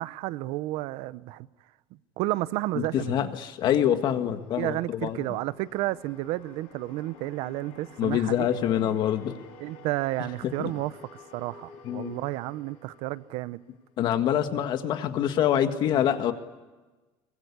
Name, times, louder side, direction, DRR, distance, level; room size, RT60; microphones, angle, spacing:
voice 1, 0.0-1.5 2.2-3.2 4.6-8.5 9.6-13.6, right 17 dB, 65° right, 0.7 m, -31 dB
voice 2, 2.8-5.2 8.0-9.4 10.4-10.7 11.8-12.2 14.0-16.3, left 10 dB, 45° left, 1.7 m, -25 dB
sound 1, 4.1-14.1, left 4 dB, 65° left, 7.1 m, -52 dB
23.5 x 21.5 x 9.9 m
cardioid pair, 175°, 11 cm